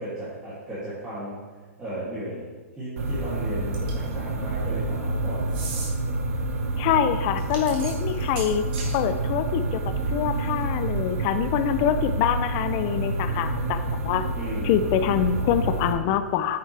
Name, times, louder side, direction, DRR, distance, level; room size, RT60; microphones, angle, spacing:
voice 1, 0.0-1.3 1.8-2.5 2.8-5.7 14.3-14.8, right 1 dB, 10° right, -12 dB, 2.5 m, -35 dB
sound 1, 3.0-15.9, right 2 dB, 70° right, 1.4 m, -28 dB
sound 2, 3.7-4.1 5.5-5.9 7.4-9.0, right 4 dB, 40° right, 2.8 m, -37 dB
voice 2, 6.8-8.6 8.9-9.8 10.1-13.8 14.0-14.2 14.6-16.6, left 9 dB, 30° left, 9 dB, 0.4 m, -25 dB
9.5 x 7.8 x 3.4 m, 1.4 s
hypercardioid pair, 155°, 8 cm